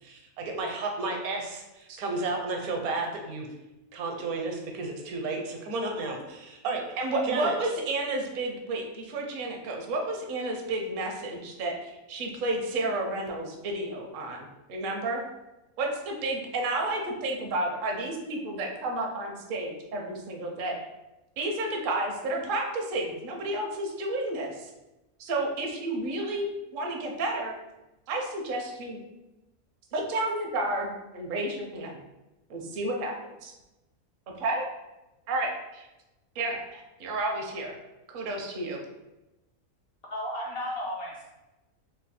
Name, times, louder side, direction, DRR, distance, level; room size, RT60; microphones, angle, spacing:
voice 1, 0.0-3.5 3.9-6.8 7.2-7.5, right 3 dB, 80° right, 2 dB, 1.2 m, -32 dB
voice 2, 7.0-15.2 15.8-20.8 21.4-24.7 25.2-26.4 26.7-27.5 28.1-29.0 29.9-32.0 32.5-33.1 33.4-33.5 34.4-34.6 35.3-35.9 36.4-37.7 38.1-38.8, right 2 dB, 55° right, 1 dB, 0.6 m, -31 dB
voice 3, 40.1-41.3, equal, 65° left, -3 dB, 0.6 m, -34 dB
3.1 x 2.2 x 4.2 m, 1.0 s
omnidirectional pair, 1.5 m